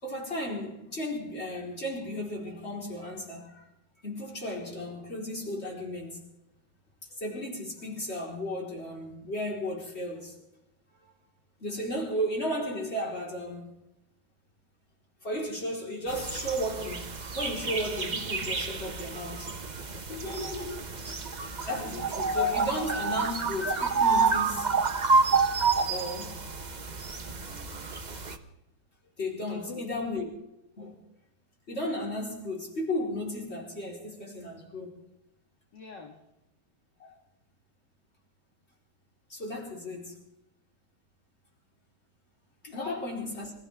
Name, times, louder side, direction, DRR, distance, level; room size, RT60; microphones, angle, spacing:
voice 1, 0.0-3.6 4.0-6.2 7.0-10.4 11.0-11.1 11.6-13.7 15.2-19.5 21.7-24.7 25.9-26.4 27.4-28.0 29.2-30.3 30.8-31.0 31.7-35.0 37.0-37.1 39.3-40.2 42.6-43.5, equal, 30° left, 4.4 m, -34 dB
sound 1, 16.1-28.3, right 4 dB, 35° right, 0.7 m, -29 dB
voice 2, 20.1-20.8 29.4-29.9 35.7-36.2 42.7-43.1, left 3 dB, 55° left, 2.3 m, -40 dB
26.5 x 15.0 x 3.6 m
omnidirectional pair, 2.4 m